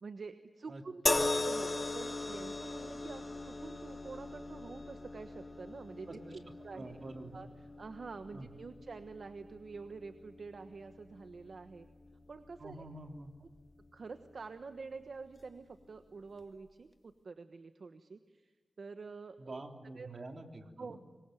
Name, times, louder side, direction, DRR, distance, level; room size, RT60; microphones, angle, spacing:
voice 1, 0.0-6.9 7.3-7.5 7.8-11.9 12.3-12.9 13.4-13.5 13.9-18.5 18.8-20.2 20.6-21.0, right 4 dB, 70° right, 9 dB, 1.2 m, -47 dB
sound 1, 1.1-14.4 15.3-15.5, left 2 dB, 35° left, 2.0 m, -39 dB
voice 2, 6.1-6.4 6.7-7.4 8.3-8.5 12.6-13.3 19.4-21.0, right 2 dB, 55° right, 5 dB, 3.3 m, -47 dB
27.0 x 23.5 x 9.3 m, 1.3 s
wide cardioid pair, 90°, 0 cm